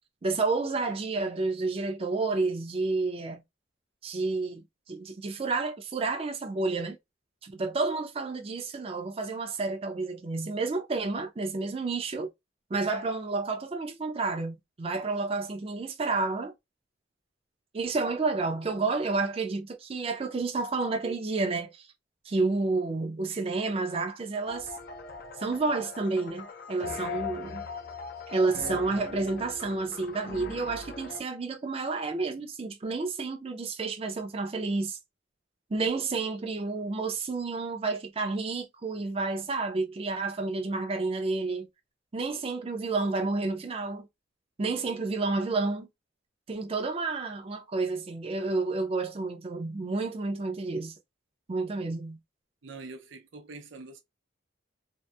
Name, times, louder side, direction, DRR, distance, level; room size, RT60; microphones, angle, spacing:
voice 1, 0.2-3.4 4.0-7.0 7.4-12.3 12.7-16.5 17.7-21.9 22.3-24.7 25.4-27.6 28.3-35.0 35.7-41.7 42.1-44.1 44.6-45.9 46.5-50.9 51.5-52.2, right 3 dB, 30° right, 0.4 m, -30 dB
sound 1, 24.5-31.2, left 5 dB, 50° left, 0.5 m, -40 dB
voice 2, 52.6-54.0, right 3 dB, 90° right, 0.6 m, -44 dB
2.7 x 2.0 x 2.2 m
head